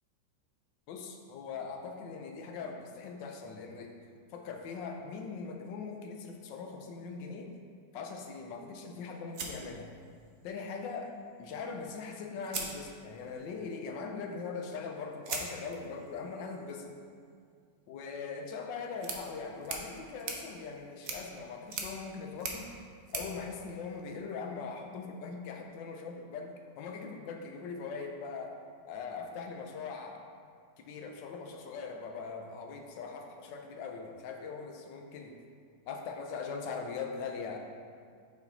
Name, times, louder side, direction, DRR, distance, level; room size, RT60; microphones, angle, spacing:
voice 1, 0.9-4.0 4.3-7.5 7.9-9.9 10.4-11.1 11.4-16.9 17.9-22.7 23.1-28.5 28.9-30.2 30.8-35.3 35.9-37.6, left 5 dB, 75° left, 3 dB, 1.2 m, -41 dB
sound 1, 9.3-10.5 11.8-11.9 12.4-13.4 15.2-24.4, right 4 dB, 90° right, 0.6 m, -43 dB
5.1 x 4.9 x 3.9 m, 2.2 s
omnidirectional pair, 2.1 m